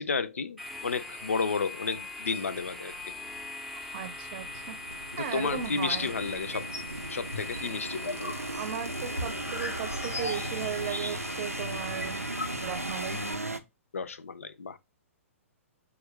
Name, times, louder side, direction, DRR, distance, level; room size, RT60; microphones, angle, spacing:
voice 1, 0.0-2.9 5.1-6.7 7.1-8.3 13.9-14.8, left 5 dB, 70° left, 0.5 m, -32 dB
sound 1, 0.6-13.3, left 3 dB, ahead, 0.6 m, -41 dB
sound 2, 2.2-2.3 2.9-3.5 4.2-13.6, right 1 dB, 90° right, 0.5 m, -37 dB
voice 2, 3.7-4.8 5.2-6.1 8.5-12.2 12.6-13.2, right 9 dB, 40° right, 0.6 m, -36 dB
sound 3, 6.3-6.9 7.3-11.5 11.7-11.8 12.0-13.0, left 1 dB, 90° left, 0.9 m, -38 dB
6.1 x 2.4 x 3.1 m
figure-of-eight pair, 115°, 8 cm